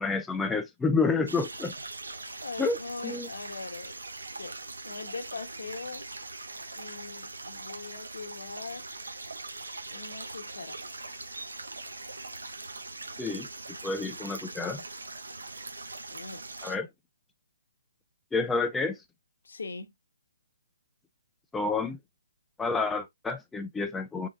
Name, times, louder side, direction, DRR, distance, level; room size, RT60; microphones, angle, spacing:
voice 1, 0.0-1.7 2.6-2.8 3.0-3.3 13.2-13.5 13.8-14.8 16.6-16.9 18.3-19.0 21.5-22.0 22.6-24.3, left 4 dB, 5° left, 0.3 m, -29 dB
sound 1, 1.3-16.7, right 3 dB, 85° right, 0.9 m, -41 dB
voice 2, 2.4-4.0 4.4-4.6 4.8-6.1 6.7-8.9 9.9-10.8 16.1-16.4 19.4-19.9, left 4 dB, 75° left, 0.8 m, -41 dB
3.8 x 3.6 x 2.4 m
hypercardioid pair, 150°, 0 cm